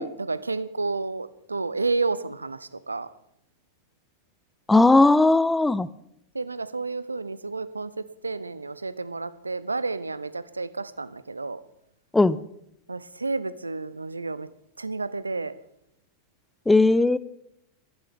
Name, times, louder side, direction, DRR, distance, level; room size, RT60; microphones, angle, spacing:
voice 1, 0.0-3.1 6.3-11.6 12.9-14.5 14.8-15.6, right 3 dB, 80° right, 0.6 m, -31 dB
voice 2, 4.7-5.9 12.1-12.4 16.7-17.2, left 2 dB, 5° left, 0.5 m, -17 dB
19.5 x 14.5 x 3.6 m
figure-of-eight pair, 90°, 0 cm